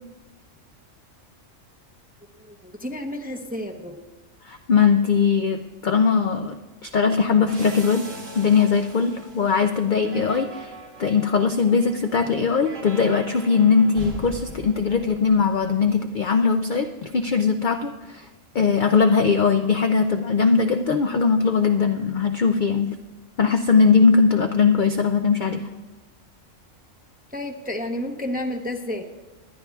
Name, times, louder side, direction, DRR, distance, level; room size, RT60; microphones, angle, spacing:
voice 1, 2.5-4.0 10.0-10.2 27.3-29.0, left 1 dB, 10° right, 4 dB, 0.5 m, -31 dB
voice 2, 4.4-6.6 6.8-8.1 8.3-10.7 11.0-18.3 18.5-22.9 23.4-25.6, left 5 dB, 60° left, 6 dB, 0.5 m, -20 dB
sound 1, 7.5-15.9, right 1 dB, 75° right, 2.0 m, -41 dB
22.0 x 10.5 x 2.3 m, 1.2 s
omnidirectional pair, 1.3 m